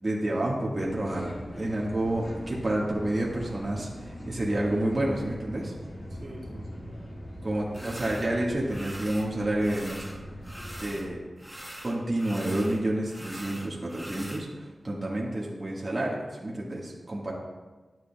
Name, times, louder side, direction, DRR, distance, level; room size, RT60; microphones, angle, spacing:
voice 1, 0.0-5.7 7.4-10.2 10.8-11.2 11.8-17.3, right 1 dB, 35° right, -4 dB, 1.5 m, -29 dB
sound 1, 0.8-11.1, equal, 50° left, 1.9 m, -41 dB
voice 2, 6.1-7.2 7.7-8.1 11.4-11.7, right 2 dB, 80° right, -6 dB, 2.2 m, -48 dB
sound 2, 7.7-8.3 8.7-9.3 9.6-11.1 11.4-14.4, equal, 5° right, 1.1 m, -43 dB
11.5 x 7.7 x 2.3 m, 1.3 s
wide cardioid pair, 75°, 0 cm